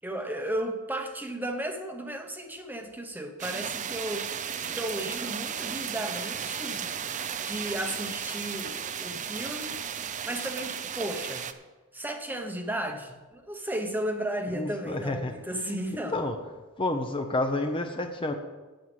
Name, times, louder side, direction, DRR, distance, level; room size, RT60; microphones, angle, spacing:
voice 1, 0.0-4.3 4.7-6.9 7.4-9.8 10.2-11.5 11.9-16.1, right 1 dB, 10° right, 5 dB, 0.9 m, -34 dB
sound 1, 3.4-11.5, right 8 dB, 35° right, 0.5 m, -34 dB
voice 2, 14.5-15.3 15.6-16.4 16.8-18.3, left 2 dB, 25° left, 5 dB, 0.8 m, -30 dB
9.1 x 7.2 x 7.7 m, 1.2 s
head